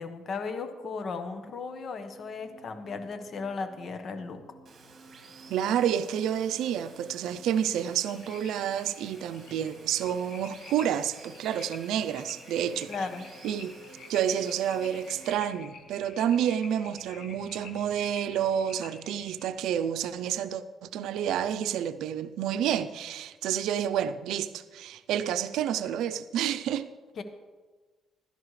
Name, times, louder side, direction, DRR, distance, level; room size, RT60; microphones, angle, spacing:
voice 1, 0.0-4.4 12.9-13.3 27.2-27.3, left 4 dB, 55° left, 1.1 m, -36 dB
sound 1, 1.4-19.9, right 1 dB, 30° left, 3.7 m, -56 dB
Water, 4.7-15.3, right 4 dB, 45° right, 1.9 m, -53 dB
voice 2, 5.5-12.9 13.4-13.8 14.1-26.9, right 9 dB, 85° right, 0.5 m, -29 dB
sound 2, 7.5-19.5, left 5 dB, 75° left, 1.5 m, -50 dB
16.0 x 12.5 x 3.2 m
cardioid pair, 90°, 0 cm